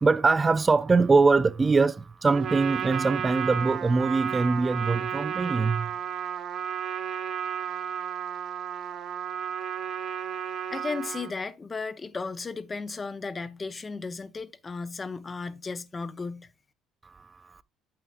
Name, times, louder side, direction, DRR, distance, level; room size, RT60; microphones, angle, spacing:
voice 1, 0.0-5.9, right 4 dB, 25° right, 0.3 m, -22 dB
Trumpet, 2.3-11.3, right 8 dB, 55° right, 1.3 m, -33 dB
voice 2, 10.7-16.5, left 4 dB, 25° left, 0.7 m, -35 dB
8.6 x 8.0 x 2.4 m
cardioid pair, 100°, 0 cm